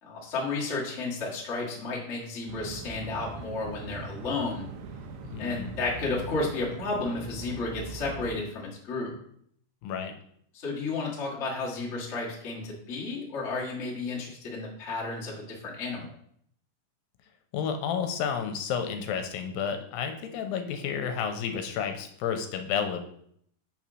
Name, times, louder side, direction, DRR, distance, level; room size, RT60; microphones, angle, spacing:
voice 1, 0.0-4.6 5.4-9.1 10.5-16.1, left 3 dB, 60° left, -4 dB, 0.7 m, -32 dB
sound 1, 2.5-8.4, right 3 dB, 80° right, 2.1 m, -41 dB
voice 2, 5.3-5.7 9.8-10.1 17.5-23.0, left 7 dB, 75° left, 6 dB, 2.3 m, -31 dB
5.5 x 4.3 x 6.1 m, 0.67 s
omnidirectional pair, 4.4 m